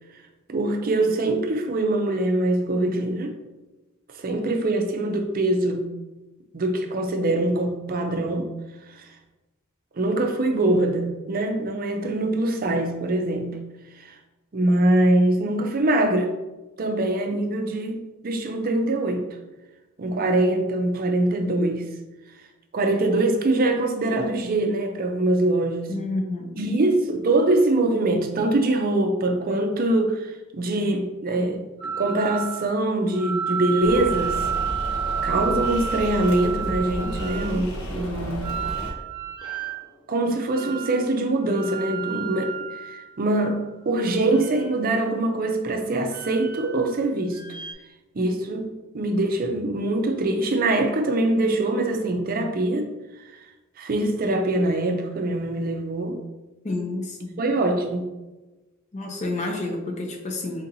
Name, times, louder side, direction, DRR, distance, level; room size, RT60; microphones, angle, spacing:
voice 1, 0.5-3.3 4.2-5.9 6.5-8.5 9.9-13.6 14.5-16.3 16.8-19.2 20.0-21.9 22.7-25.9 26.6-34.4 35.2-38.5 40.1-42.5 42.8-47.4 48.2-52.9 53.8-56.2 57.4-58.1, right 2 dB, 40° right, 5 dB, 0.5 m, -23 dB
voice 2, 25.9-26.7 56.6-57.4 58.9-60.7, left 2 dB, 30° left, 2 dB, 0.5 m, -30 dB
sound 1, 31.8-32.7 33.1-37.5 38.4-39.8 40.5-41.0 41.4-43.6 44.2-45.1 46.0-47.0 47.3-47.7, right 7 dB, 20° right, 0.9 m, -31 dB
sound 2, 33.8-38.9, equal, 75° left, 0.8 m, -32 dB
4.0 x 3.8 x 2.7 m, 1.1 s
head